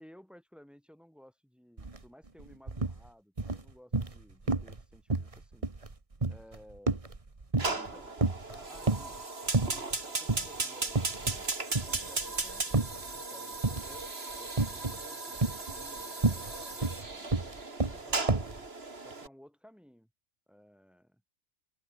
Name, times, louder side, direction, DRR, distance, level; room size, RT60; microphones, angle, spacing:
voice 1, 0.0-5.7 6.3-7.0 7.6-8.2 8.5-9.2 10.0-14.1 14.4-17.4 17.9-18.3 19.0-20.1 20.5-21.2, equal, ahead, 7.3 m, -56 dB
sound 1, 1.8-2.0 2.3-3.0 3.4-4.2 4.5-4.8 5.1-7.9 8.2-9.2 9.5-10.0 10.3-10.5 10.9-11.5 11.7-13.1 13.6-14.0 14.6-15.0 15.4-18.6, right 3 dB, 25° right, 1.6 m, -30 dB
Fire, 7.6-19.3, right 3 dB, 45° right, 3.1 m, -37 dB
omnidirectional pair, 1.4 m